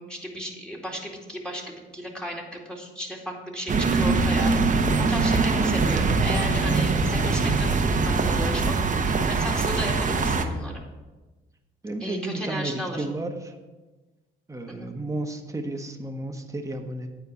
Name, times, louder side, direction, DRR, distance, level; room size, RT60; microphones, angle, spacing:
voice 1, 0.0-10.8 12.0-13.1 14.7-14.9, right 1 dB, 5° left, 0 dB, 2.4 m, -35 dB
sound 1, 3.7-10.4, right 3 dB, 40° right, 1.1 m, -22 dB
voice 2, 11.8-13.5 14.5-17.1, right 2 dB, 15° right, 4 dB, 1.3 m, -32 dB
9.3 x 4.6 x 7.2 m, 1.2 s
supercardioid pair, 70°, 20 cm